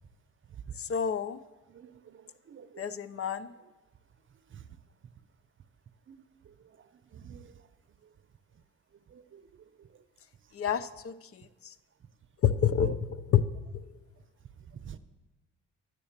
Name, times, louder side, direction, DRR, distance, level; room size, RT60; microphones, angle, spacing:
voice 1, 0.8-1.4 2.8-3.5 10.5-11.7 12.4-13.4 13.7-13.8, left 8 dB, 50° left, 0.6 m, -29 dB
voice 2, 1.7-3.0 4.5-4.6 6.1-6.2 7.1-7.5 9.1-9.4 12.8-12.9 14.8-15.0, right 8 dB, 40° right, 0.7 m, -47 dB
9.9 x 7.6 x 7.3 m
cardioid pair, 90°, 30 cm